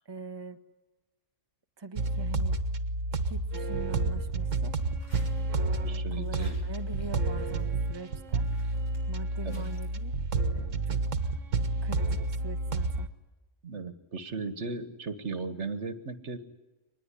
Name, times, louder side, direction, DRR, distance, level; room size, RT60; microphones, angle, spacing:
voice 1, 0.0-0.6 1.8-2.6 3.1-4.8 5.6-8.5 9.1-10.2 10.5-11.4 11.8-13.1, right 4 dB, 20° right, 6 dB, 1.2 m, -43 dB
sound 1, 1.9-13.1, right 2 dB, 80° right, 1.6 m, -30 dB
sound 2, 5.0-5.8 6.1-9.9, equal, 50° left, 7.7 m, -58 dB
voice 2, 5.8-6.6 9.5-9.6 13.6-16.4, right 4 dB, 65° right, 11 dB, 1.7 m, -36 dB
24.5 x 20.5 x 9.9 m, 1.1 s
omnidirectional pair, 1.3 m